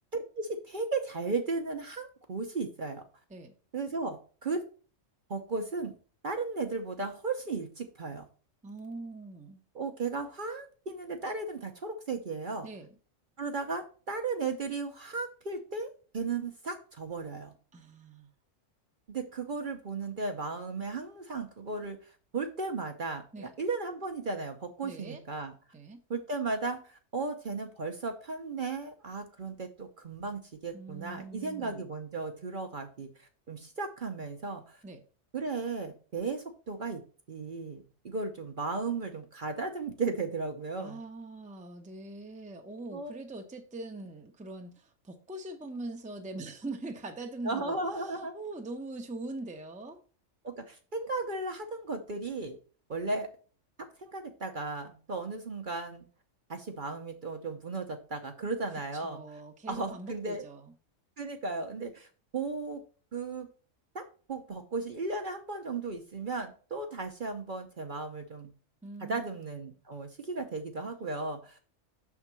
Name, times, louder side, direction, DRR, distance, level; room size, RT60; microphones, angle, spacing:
voice 1, 0.1-3.0 3.7-4.6 5.3-5.9 6.2-8.2 9.7-12.7 13.4-17.5 19.1-25.5 26.1-34.8 35.3-37.0 37.3-41.0 42.9-43.1 47.4-48.4 50.4-52.6 52.9-53.3 54.0-56.1 56.5-59.2 59.7-60.4 61.2-62.1 62.3-62.8 63.1-63.5 63.9-68.5 69.0-71.6, right 3 dB, 45° right, 0.9 m, -35 dB
voice 2, 8.6-9.6 12.6-13.0 17.7-18.3 23.3-23.5 24.8-25.2 25.7-26.0 30.7-31.9 34.8-35.0 40.8-50.0 58.9-60.7 68.8-69.3, right 2 dB, 5° right, 0.7 m, -42 dB
6.4 x 3.6 x 5.9 m
omnidirectional pair, 1.3 m